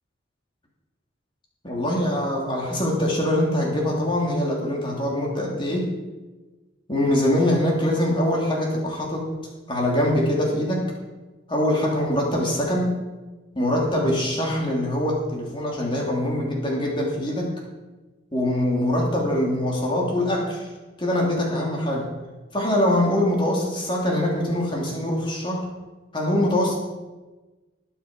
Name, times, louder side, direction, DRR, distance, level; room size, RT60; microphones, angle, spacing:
voice 1, 1.6-5.9 6.9-9.3 9.7-10.9 11.5-13.0 13.5-17.5 18.3-20.7 21.0-22.1 22.5-25.7 26.1-26.7, left 1 dB, 25° left, -2 dB, 3.1 m, -23 dB
20.0 x 7.4 x 5.2 m, 1.2 s
head